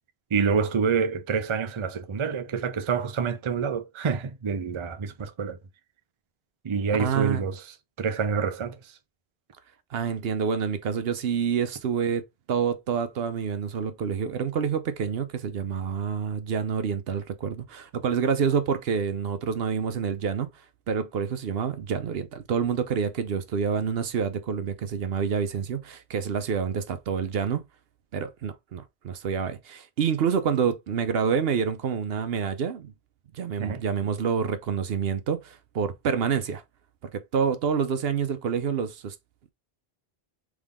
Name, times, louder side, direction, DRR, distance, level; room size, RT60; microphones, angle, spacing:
voice 1, 0.3-5.6 6.6-7.6 8.0-8.9 33.6-33.8, right 5 dB, 35° right, 0.5 m, -27 dB
voice 2, 7.0-7.5 9.9-12.2 12.5-20.5 20.9-27.6 28.1-32.9 33.3-36.6 37.1-39.2, right 6 dB, 70° right, 0.9 m, -27 dB
3.6 x 3.6 x 3.6 m
omnidirectional pair, 1.0 m